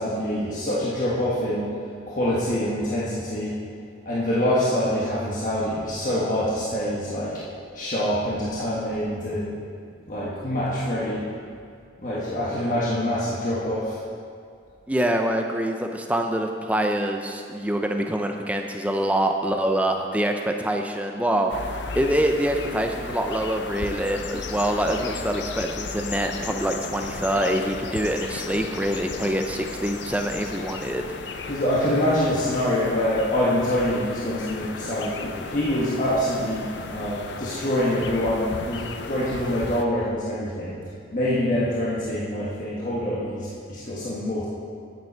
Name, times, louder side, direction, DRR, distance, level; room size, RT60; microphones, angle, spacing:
voice 1, 0.0-1.7 2.1-3.6 4.0-7.5 7.7-9.5 10.0-11.3 12.0-14.0 31.5-40.8 41.1-44.5, left 1 dB, 45° left, -8 dB, 1.4 m, -25 dB
voice 2, 14.9-21.5 22.0-31.1, right 1 dB, 5° right, 3 dB, 0.5 m, -25 dB
sound 1, 21.5-39.8, left 4 dB, 70° left, 0.6 m, -35 dB
9.9 x 9.3 x 4.5 m, 2.2 s
head